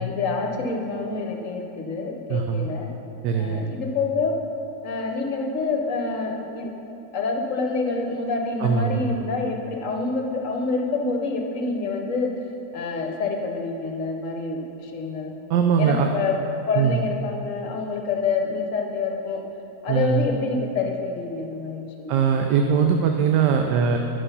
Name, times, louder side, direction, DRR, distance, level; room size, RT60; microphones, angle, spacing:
voice 1, 0.0-2.9 3.3-4.3 4.8-12.3 12.7-15.3 15.8-16.4 16.6-19.4 19.8-22.3, left 4 dB, 55° left, 2 dB, 1.1 m, -27 dB
voice 2, 2.3-2.7 3.2-3.7 8.6-9.1 15.5-16.1 16.8-17.0 19.9-20.2 22.1-24.0, right 7 dB, 85° right, 4 dB, 1.2 m, -21 dB
11.0 x 5.6 x 5.5 m, 2.9 s
omnidirectional pair, 1.8 m